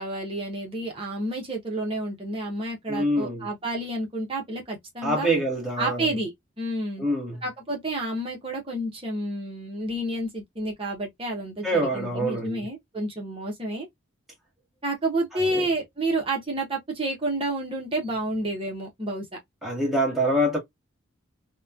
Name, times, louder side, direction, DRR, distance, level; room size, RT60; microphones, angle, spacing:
voice 1, 0.0-5.3 5.8-7.0 7.4-13.9 14.8-19.3, right 1 dB, 25° right, 0.8 m, -30 dB
voice 2, 2.9-3.5 5.0-6.1 7.0-7.4 11.6-12.6 15.3-15.7 19.6-20.6, right 1 dB, ahead, 1.0 m, -25 dB
2.9 x 2.1 x 2.3 m
head